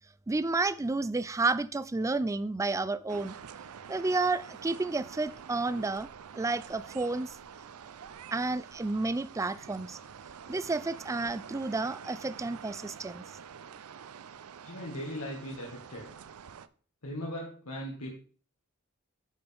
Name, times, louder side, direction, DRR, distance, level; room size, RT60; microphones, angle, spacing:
voice 1, 0.3-3.3 3.9-6.1 6.3-7.4 8.3-10.0 10.5-13.2, right 3 dB, 15° right, 0.3 m, -31 dB
sound 1, 3.1-16.7, right 7 dB, 75° right, 0.5 m, -47 dB
voice 2, 14.6-16.1 17.0-18.2, equal, 75° left, 1.6 m, -38 dB
9.2 x 6.9 x 3.4 m
head